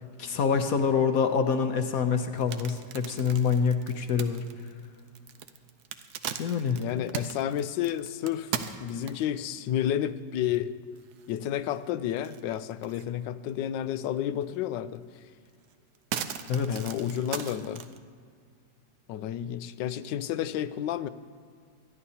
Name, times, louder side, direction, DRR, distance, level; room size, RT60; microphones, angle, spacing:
voice 1, 0.2-4.4 6.4-6.8 16.5-16.8, left 6 dB, 60° left, 7 dB, 1.1 m, -26 dB
sound 1, 2.2-9.4 10.0-10.1 10.5-10.6 11.0-11.8 12.2-13.1 13.5-13.6 15.0-15.1 15.5-18.0, right 8 dB, 70° right, 1.1 m, -38 dB
voice 2, 6.8-8.6 8.8-10.7 11.3-15.0 16.7-17.8 19.1-21.1, left 10 dB, 85° left, 13 dB, 1.2 m, -31 dB
25.0 x 11.0 x 2.8 m, 2.1 s
omnidirectional pair, 1.9 m